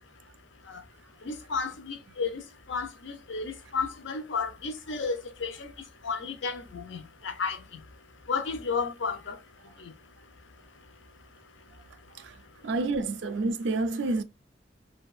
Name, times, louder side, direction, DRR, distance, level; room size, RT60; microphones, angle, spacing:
voice 1, 1.2-2.4 2.7-5.7 6.0-7.6 8.3-9.4 9.8-9.9, left 5 dB, 75° left, 0.6 m, -32 dB
voice 2, 12.6-14.2, right 3 dB, 70° right, 0.4 m, -28 dB
2.6 x 2.2 x 2.3 m
head